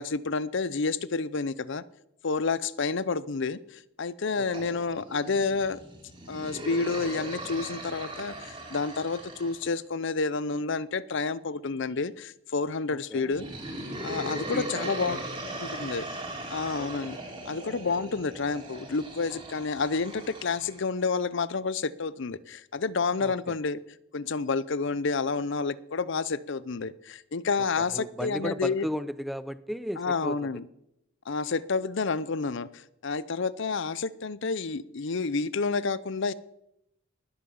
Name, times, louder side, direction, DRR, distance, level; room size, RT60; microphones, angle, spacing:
voice 1, 0.0-1.8 2.2-5.8 6.3-13.5 14.0-15.2 15.6-16.1 16.5-17.2 17.4-23.8 24.1-28.9 30.0-30.7 31.3-36.3, left 4 dB, 60° left, 18 dB, 0.6 m, -29 dB
voice 2, 4.4-4.7 12.9-13.3 14.5-15.2 16.7-17.1 23.2-23.5 27.6-30.5, equal, ahead, 14 dB, 0.5 m, -36 dB
sound 1, 4.5-9.7 13.3-20.8, right 1 dB, 25° right, 3.4 m, -39 dB
20.0 x 8.7 x 7.1 m, 0.83 s
head